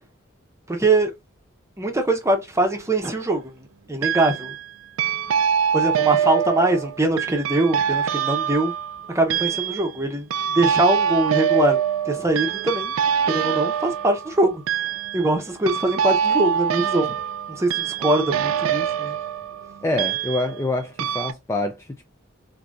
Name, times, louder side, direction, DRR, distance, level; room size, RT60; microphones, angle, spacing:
voice 1, 0.7-1.1 1.8-4.5 5.7-8.7 9.1-11.8 12.0-12.9 13.3-14.6 15.1-17.1 17.5-19.2, right 2 dB, 15° right, 0.8 m, -22 dB
sound 1, 2.7-3.3 4.0-4.6 5.0-20.7 21.0-21.3, right 8 dB, 85° right, 0.4 m, -24 dB
voice 2, 19.8-22.1, left 2 dB, 15° left, 0.4 m, -26 dB
3.8 x 2.7 x 2.4 m
head